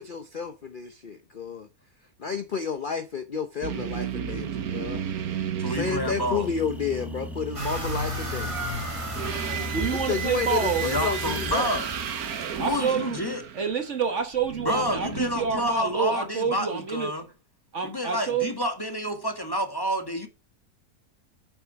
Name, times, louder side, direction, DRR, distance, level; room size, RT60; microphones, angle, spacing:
voice 1, 0.0-1.7 2.2-5.0 5.6-8.7 9.9-11.7, left 6 dB, 40° left, 0.8 m, -31 dB
sound 1, 3.6-6.9 8.9-16.2, right 8 dB, 70° right, 1.5 m, -34 dB
voice 2, 5.6-6.5 10.8-11.9 12.6-13.4 14.6-17.3 17.8-20.3, equal, 15° left, 2.0 m, -29 dB
sound 2, 5.7-11.6, left 2 dB, ahead, 1.5 m, -38 dB
sound 3, 7.5-12.7, right 1 dB, 20° right, 1.4 m, -34 dB
voice 3, 9.7-10.8 12.6-13.2 13.5-17.1 17.7-18.5, right 6 dB, 50° right, 1.7 m, -28 dB
8.6 x 7.0 x 5.9 m
omnidirectional pair, 1.7 m